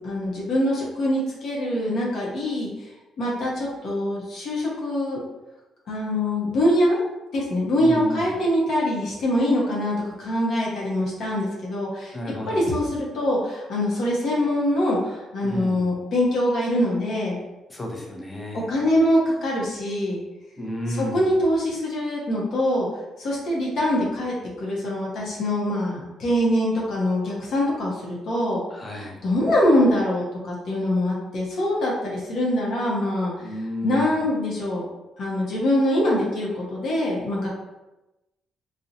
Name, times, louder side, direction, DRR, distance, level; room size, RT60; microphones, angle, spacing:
voice 1, 0.0-2.9 3.2-5.2 5.9-7.0 7.3-12.2 12.5-17.4 18.7-20.2 20.9-22.9 23.2-28.6 28.9-33.3 33.8-34.8 35.2-37.5, left 1 dB, 65° left, -4 dB, 0.6 m, -24 dB
voice 2, 7.8-8.3 12.1-12.7 15.4-15.8 17.7-18.7 20.6-21.3 28.7-29.2 33.4-34.2, left 1 dB, 20° left, 0 dB, 0.6 m, -32 dB
2.5 x 2.0 x 2.7 m, 1.0 s
cardioid pair, 90°, 0 cm